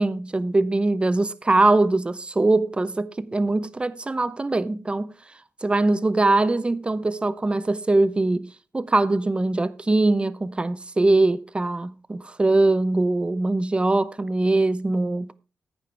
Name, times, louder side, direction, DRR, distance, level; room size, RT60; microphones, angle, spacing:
voice 1, 0.0-5.1 5.6-8.5 8.7-15.4, right 2 dB, 25° right, 0.7 m, -22 dB
15.0 x 9.3 x 3.4 m
cardioid pair, 80°, 5 cm